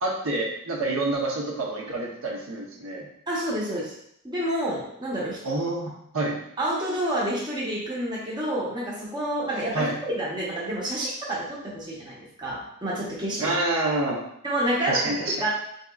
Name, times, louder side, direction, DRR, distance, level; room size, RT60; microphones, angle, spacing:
voice 1, 0.0-3.1 5.4-6.4 9.7-10.0 13.4-14.2 14.9-15.3, right 2 dB, 80° right, -2 dB, 0.8 m, -27 dB
voice 2, 3.3-3.9 4.2-5.4 6.6-13.6 14.4-15.0 15.4-15.5, right 1 dB, 20° right, -5 dB, 0.8 m, -29 dB
4.8 x 2.8 x 2.3 m, 0.73 s
head